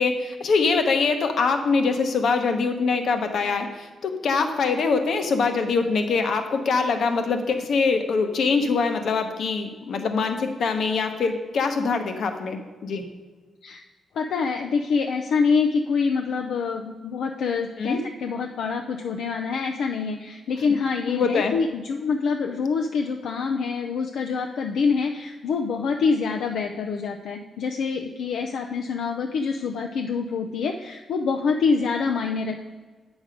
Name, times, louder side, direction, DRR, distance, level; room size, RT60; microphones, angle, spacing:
voice 1, 0.0-13.0 17.8-18.0 21.1-21.5, left 4 dB, 60° left, 6 dB, 1.0 m, -23 dB
voice 2, 14.1-32.7, left 5 dB, 80° left, 3 dB, 0.5 m, -26 dB
8.8 x 6.3 x 5.0 m, 1.3 s
wide cardioid pair, 140°, 0 cm